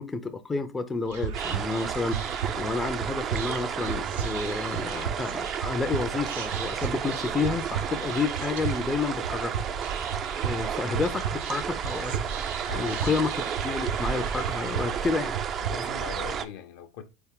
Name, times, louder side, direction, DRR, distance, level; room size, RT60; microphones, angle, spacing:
voice 1, 0.0-9.5 10.4-12.2 12.7-13.3 13.6-15.3, left 4 dB, 15° left, 0.5 m, -30 dB
Whispering, 1.0-15.7, right 7 dB, 80° right, 0.7 m, -35 dB
sound 1, 1.3-16.5, right 8 dB, 40° right, 0.4 m, -32 dB
voice 2, 12.7-13.2 15.6-17.0, left 7 dB, 70° left, 0.7 m, -41 dB
4.1 x 3.5 x 3.7 m
hypercardioid pair, 95°, 0 cm